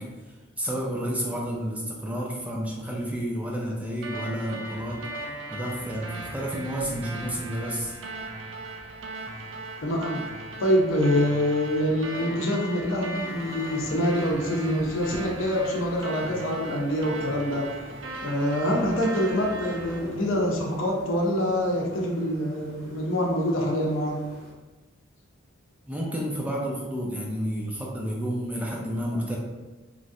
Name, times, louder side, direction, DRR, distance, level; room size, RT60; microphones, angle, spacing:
voice 1, 0.0-5.0 5.5-7.9 25.9-29.4, equal, 5° right, -2 dB, 0.3 m, -31 dB
sound 1, 4.0-20.0, right 2 dB, 70° right, 0.5 m, -38 dB
voice 2, 9.8-10.2 10.6-17.6 18.2-24.2, equal, 80° left, -1 dB, 0.6 m, -25 dB
sound 2, 13.2-24.5, equal, 50° right, 0.9 m, -46 dB
3.1 x 2.5 x 2.6 m, 1.2 s
head